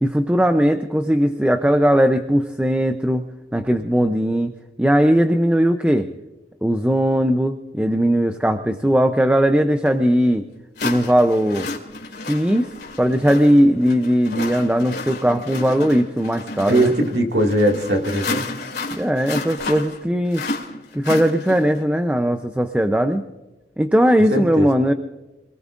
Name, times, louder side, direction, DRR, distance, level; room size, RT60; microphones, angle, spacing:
voice 1, 0.0-3.3 3.5-4.5 4.8-6.1 6.6-10.4 10.8-11.7 12.2-12.7 13.0-16.9 18.9-20.4 20.9-23.2 23.8-24.9, equal, 5° right, 7 dB, 0.5 m, -18 dB
sound 1, 9.9-10.0 10.8-21.8, left 3 dB, 65° left, 2.4 m, -31 dB
voice 2, 16.7-18.5 24.3-24.7, right 1 dB, 75° right, 2 dB, 2.0 m, -20 dB
26.5 x 18.5 x 2.5 m, 1.1 s
head